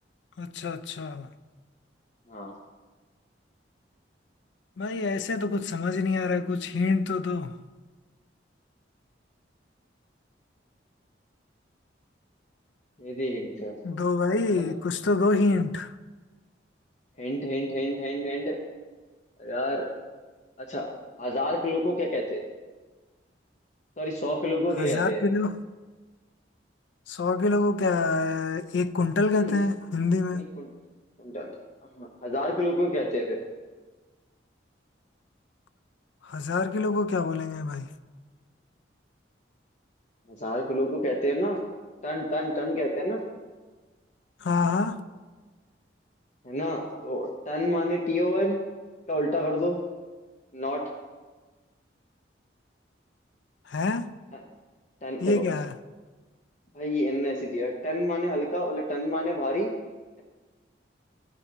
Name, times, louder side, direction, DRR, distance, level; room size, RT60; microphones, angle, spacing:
voice 1, 0.4-1.3 4.8-7.5 13.8-15.9 24.8-25.6 27.1-30.4 36.3-37.9 44.4-45.0 53.7-54.1 55.2-55.7, left 3 dB, 75° left, 0.4 m, -26 dB
voice 2, 13.0-13.7 14.5-14.7 17.2-18.6 19.4-19.9 20.6-20.9 21.2-22.4 24.0-25.2 29.3-29.6 30.3-30.7 31.2-31.5 32.0-33.4 40.3-41.6 42.0-43.2 46.4-48.6 49.1-49.8 50.5-50.9 54.3-54.4 55.0-55.4 56.7-59.7, equal, 40° left, 0.7 m, -28 dB
13.5 x 5.6 x 3.5 m
head